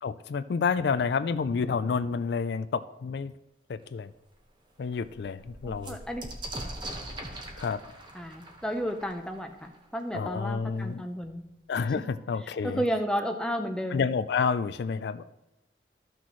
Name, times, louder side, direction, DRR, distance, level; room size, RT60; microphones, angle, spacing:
voice 1, 0.0-3.3 3.7-4.1 4.8-6.0 7.6-7.8 10.1-11.1 11.7-12.8 13.9-15.2, left 5 dB, 70° left, 13 dB, 0.3 m, -29 dB
sound 1, 3.8-3.9 4.3-4.4 4.7-10.3 11.2-11.3 11.6-12.2, right 1 dB, 25° right, 1.0 m, -42 dB
voice 2, 5.6-6.2 8.1-11.4 12.6-14.0, equal, 5° left, 4 dB, 0.6 m, -32 dB
13.5 x 6.1 x 3.1 m, 0.99 s
head